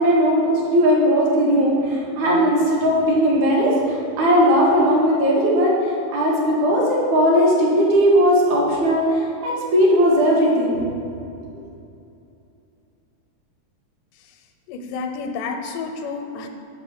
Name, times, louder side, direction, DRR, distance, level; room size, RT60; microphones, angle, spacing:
voice 1, 0.0-10.8 11.5-11.6, equal, 65° right, -5 dB, 2.7 m, -18 dB
voice 2, 14.7-16.5, left 4 dB, 85° left, 6 dB, 2.2 m, -30 dB
6.0 x 5.3 x 6.8 m, 2.6 s
omnidirectional pair, 3.7 m